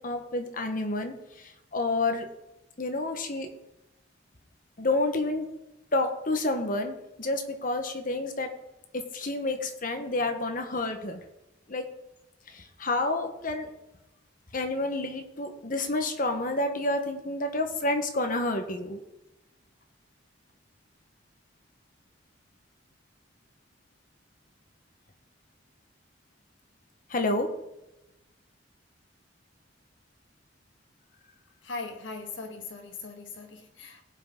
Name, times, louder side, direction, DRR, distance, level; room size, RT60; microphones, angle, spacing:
voice 1, 0.0-2.3 2.8-3.5 4.8-5.5 5.9-8.5 8.9-11.2 11.7-11.8 12.5-13.7 14.5-19.0 27.1-27.5, left 2 dB, 45° left, 1.3 m, -29 dB
voice 2, 31.6-34.0, left 3 dB, 80° left, 1.6 m, -39 dB
17.0 x 5.7 x 3.9 m
head